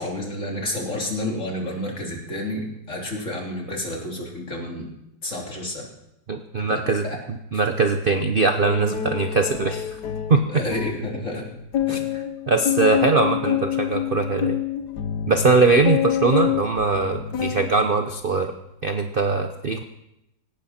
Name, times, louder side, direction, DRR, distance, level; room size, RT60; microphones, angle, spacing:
voice 1, 0.0-4.9 5.2-5.9 6.6-7.2 10.5-11.5 11.9-12.1, left 1 dB, 45° left, -1 dB, 3.8 m, -30 dB
voice 2, 6.3-9.9 10.3-10.6 11.9-14.6 15.3-18.5 18.8-19.8, right 4 dB, 40° right, 6 dB, 0.8 m, -21 dB
sound 1, 8.6-11.0 11.4-11.5 11.7-17.7 18.1-18.5, left 10 dB, 65° left, 1.6 m, -27 dB
18.5 x 17.0 x 4.3 m, 0.86 s
omnidirectional pair, 1.9 m